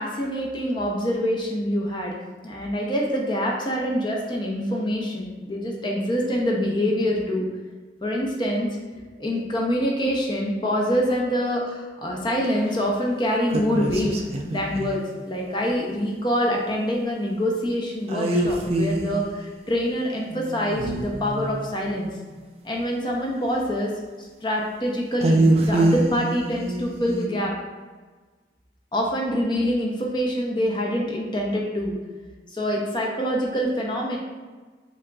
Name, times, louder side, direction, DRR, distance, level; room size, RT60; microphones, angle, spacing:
voice 1, 0.0-2.2 2.4-7.5 8.0-8.7 9.2-14.1 14.5-22.1 22.6-23.9 24.2-27.5 28.9-31.9 32.5-34.2, equal, 25° left, -2 dB, 0.6 m, -25 dB
sound 1, 13.5-15.0 18.1-19.3 20.3-21.9 25.2-27.3, right 2 dB, 35° right, 0.4 m, -24 dB
7.4 x 2.5 x 2.3 m, 1.4 s
head